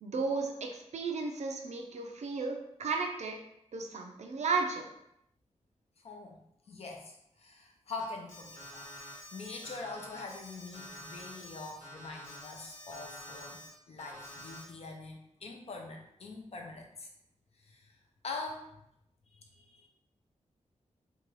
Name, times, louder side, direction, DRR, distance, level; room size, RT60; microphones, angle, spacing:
voice 1, 0.0-3.4 3.7-4.9, right 4 dB, 70° right, 3 dB, 0.4 m, -34 dB
voice 2, 6.0-6.4 6.7-17.1 17.6-17.9 18.2-18.7 19.3-19.9, left 3 dB, 55° left, 2 dB, 0.5 m, -44 dB
Alarm, 8.0-13.7 14.0-14.6, equal, 75° left, 1.1 m, -48 dB
2.6 x 2.3 x 3.1 m, 0.78 s
wide cardioid pair, 90°, 12 cm